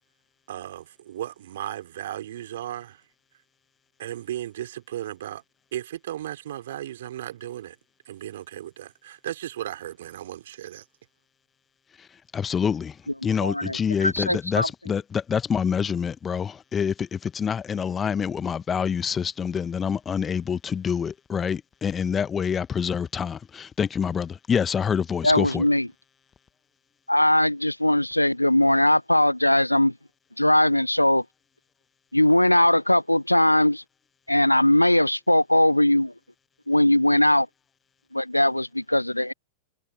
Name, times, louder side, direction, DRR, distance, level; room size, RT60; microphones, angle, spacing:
voice 1, 0.5-3.0 4.0-5.4 5.7-7.8 8.1-10.9, right 12 dB, 60° right, 3.8 m, -35 dB
voice 2, 12.3-13.0 13.2-25.7, left 7 dB, 20° left, 1.1 m, -26 dB
voice 3, 13.4-14.7 25.2-25.9 27.1-29.9 30.4-31.2 32.1-33.8 34.3-36.1 36.7-37.5 38.1-39.3, left 1 dB, 85° left, 0.6 m, -20 dB
figure-of-eight pair, 90°, 0 cm